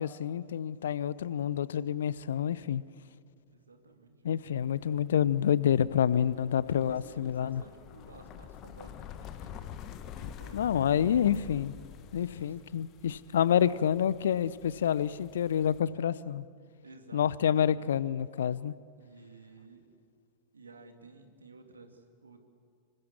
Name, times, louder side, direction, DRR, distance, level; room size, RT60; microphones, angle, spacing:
voice 1, 0.0-2.8 4.2-7.6 10.5-11.7 12.1-16.5 17.1-18.7, left 9 dB, 65° left, 20 dB, 0.7 m, -28 dB
voice 2, 3.5-4.5 6.6-9.6 10.1-10.9 12.1-12.7 13.6-13.9 16.8-17.9 19.0-19.8 20.5-22.4, right 3 dB, 75° right, 5 dB, 2.8 m, -53 dB
sound 1, 4.6-15.8, left 9 dB, 35° left, 1.4 m, -48 dB
26.5 x 23.5 x 7.4 m, 2.3 s
figure-of-eight pair, 90°, 0 cm